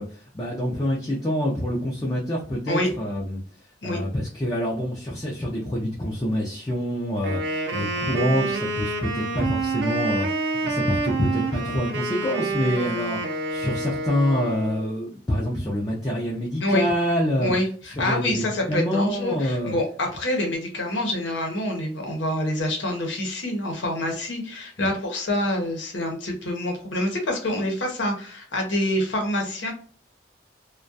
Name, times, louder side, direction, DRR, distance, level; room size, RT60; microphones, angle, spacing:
voice 1, 0.0-3.4 3.8-17.5 18.0-19.7 24.8-24.9, equal, 20° left, -3 dB, 0.4 m, -26 dB
Wind instrument woodwind instrument, 7.2-14.9, right 3 dB, 75° right, 0.6 m, -28 dB
voice 2, 17.4-29.7, left 1 dB, 90° left, 2 dB, 0.8 m, -26 dB
2.4 x 2.2 x 2.5 m, 0.41 s
head